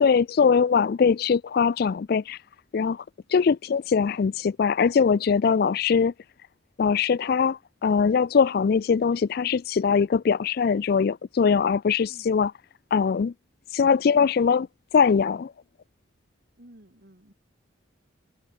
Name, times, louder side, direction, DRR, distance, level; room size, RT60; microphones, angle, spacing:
voice 1, 0.0-2.4 2.7-3.0 3.3-6.1 6.8-12.5 12.9-13.3 13.7-14.7 14.9-15.5, left 6 dB, 50° left, 0.4 m, -21 dB
voice 2, 12.0-12.5 16.6-17.3, right 1 dB, 55° right, 3.2 m, -53 dB
head